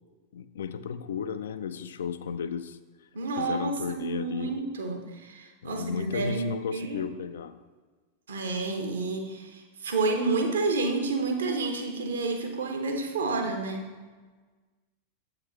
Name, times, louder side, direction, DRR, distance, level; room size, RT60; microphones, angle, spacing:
voice 1, 0.3-2.8 3.4-4.5 5.6-7.6, left 7 dB, 65° left, 12 dB, 0.3 m, -34 dB
voice 2, 3.1-7.1 8.3-13.9, right 3 dB, 65° right, 4 dB, 0.8 m, -30 dB
7.8 x 5.1 x 3.0 m, 1.4 s
figure-of-eight pair, 90°, 0 cm